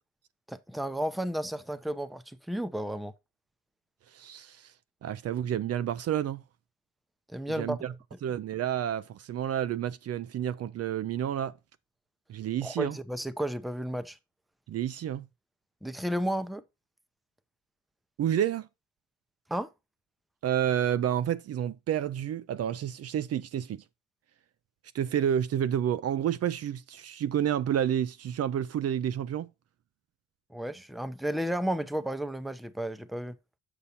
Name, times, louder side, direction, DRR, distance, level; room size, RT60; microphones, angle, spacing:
voice 1, 0.5-3.1 7.3-7.8 12.6-14.2 15.8-16.6 19.5-19.7 30.5-33.3, right 1 dB, ahead, 0.6 m, -32 dB
voice 2, 4.1-4.7 5.0-6.4 7.6-7.9 8.2-11.5 12.3-13.0 14.7-15.3 18.2-18.7 20.4-23.8 24.9-29.5, right 10 dB, 55° right, 0.5 m, -30 dB
7.1 x 5.5 x 4.2 m
cardioid pair, 90°, 30 cm